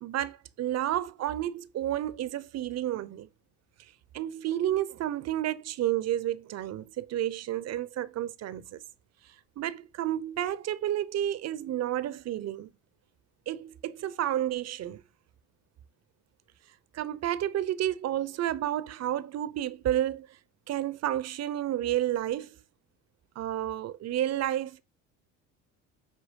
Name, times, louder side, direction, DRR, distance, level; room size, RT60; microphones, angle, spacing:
voice 1, 0.0-3.3 4.1-8.8 9.6-12.7 13.5-15.0 16.9-20.3 20.7-22.5 23.4-24.8, right 12 dB, 50° right, 0.7 m, -31 dB
8.2 x 3.0 x 5.2 m
supercardioid pair, 80°, 34 cm